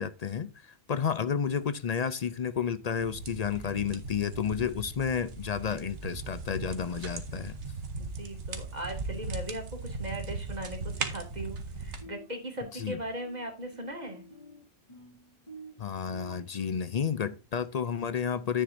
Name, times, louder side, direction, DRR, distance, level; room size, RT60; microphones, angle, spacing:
voice 1, 0.0-7.6 12.7-13.0 15.8-18.6, left 7 dB, 55° left, 0.4 m, -31 dB
sound 1, 3.0-12.0, right 4 dB, 65° right, 1.5 m, -38 dB
voice 2, 7.9-14.2, right 1 dB, 35° right, 2.6 m, -39 dB
sound 2, 10.9-11.5 11.7-16.4, right 1 dB, 25° left, 4.3 m, -50 dB
10.0 x 8.0 x 2.6 m
omnidirectional pair, 1.3 m